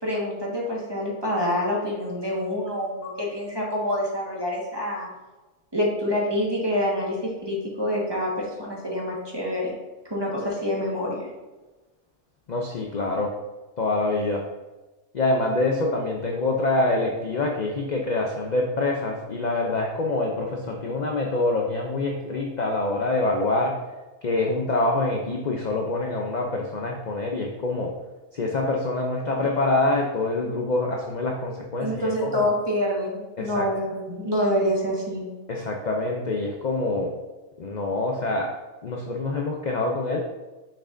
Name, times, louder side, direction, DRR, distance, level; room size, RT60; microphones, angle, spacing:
voice 1, 0.0-5.1 5.7-9.7 10.1-11.3 31.8-35.3, left 1 dB, 20° right, -4 dB, 1.4 m, -26 dB
voice 2, 12.5-13.3 13.8-14.4 15.1-23.8 24.2-27.9 28.3-32.5 33.4-33.7 35.5-37.1 37.6-38.5 38.8-40.2, left 2 dB, 50° left, 0 dB, 0.5 m, -25 dB
6.5 x 6.0 x 2.6 m, 1.2 s
omnidirectional pair, 1.5 m